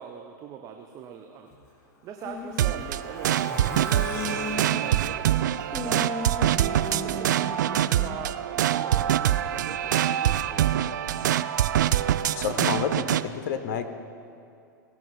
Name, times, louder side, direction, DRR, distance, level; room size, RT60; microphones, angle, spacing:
voice 1, 0.0-6.3 6.8-11.2, right 7 dB, 35° right, 4 dB, 0.7 m, -42 dB
Truck, 1.5-6.2 6.5-6.6 6.9-7.0, left 2 dB, 25° left, 1.8 m, -44 dB
sound 1, 2.2-2.9 3.5-5.3 5.7-8.2, left 3 dB, 5° left, 0.7 m, -37 dB
sound 2, 2.6-13.2, right 11 dB, 65° right, 0.4 m, -25 dB
voice 2, 12.4-13.9, left 7 dB, 55° left, 9 dB, 0.9 m, -29 dB
17.0 x 6.0 x 5.7 m, 2.5 s
figure-of-eight pair, 95°, 11 cm